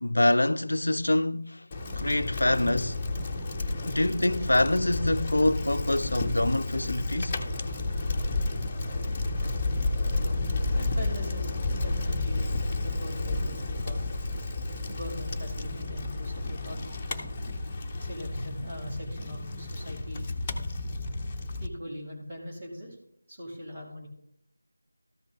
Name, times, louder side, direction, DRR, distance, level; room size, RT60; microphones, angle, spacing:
voice 1, 0.0-1.7 2.0-3.0 3.8-7.4, left 1 dB, 60° left, 0.4 m, -25 dB
Bicycle, 1.7-21.7, left 2 dB, 15° left, 0.6 m, -31 dB
voice 2, 10.8-11.5 11.8-14.1 14.9-16.8 18.0-20.3 21.6-23.0 23.3-24.1, equal, 20° right, 2.5 m, -41 dB
13.5 x 5.2 x 3.5 m
figure-of-eight pair, 165°, 0 cm